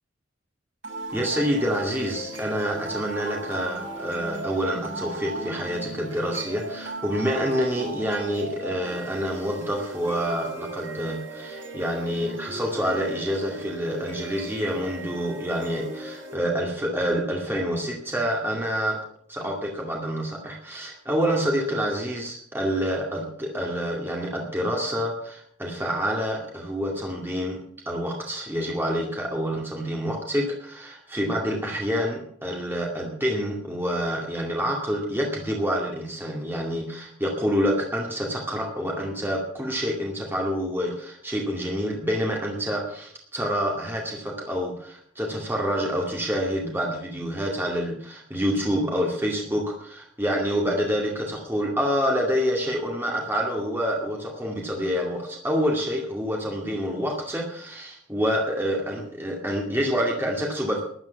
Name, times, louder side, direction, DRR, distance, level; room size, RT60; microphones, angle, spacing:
sound 1, 0.8-16.8, right 2 dB, 65° right, 6.5 m, -37 dB
voice 1, 1.1-19.0 19.3-27.6 27.9-60.8, equal, 10° right, -1 dB, 2.2 m, -27 dB
13.0 x 11.0 x 7.0 m, 0.65 s
head